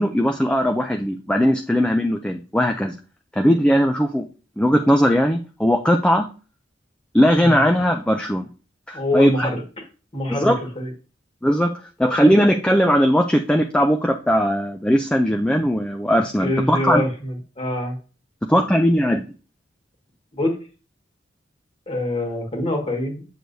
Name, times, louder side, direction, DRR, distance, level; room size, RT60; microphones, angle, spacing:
voice 1, 0.0-2.9 3.3-4.2 4.6-6.2 7.1-8.5 8.9-9.5 10.3-10.6 11.4-17.0 18.5-19.2, equal, 5° left, 4 dB, 0.5 m, -19 dB
voice 2, 8.9-9.6 10.1-10.9 16.4-18.0 20.3-20.6 21.9-23.3, left 1 dB, 30° left, 1 dB, 1.8 m, -25 dB
7.6 x 6.6 x 2.7 m, 0.37 s
head